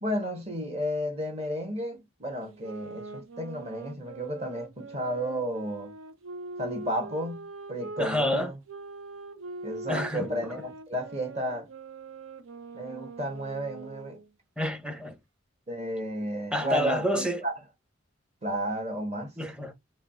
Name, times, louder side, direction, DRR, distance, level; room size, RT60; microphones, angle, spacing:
voice 1, 0.0-5.9 6.6-8.6 9.6-11.7 12.7-14.2 15.7-17.5 18.4-19.3, equal, 30° right, 1.6 m, -33 dB
sound 1, 2.5-8.1 8.7-14.3, right 3 dB, 85° right, 0.8 m, -43 dB
voice 2, 8.0-8.5 9.9-10.5 14.6-15.1 16.5-17.4 19.4-19.7, equal, 5° right, 0.8 m, -28 dB
4.9 x 2.4 x 4.4 m
head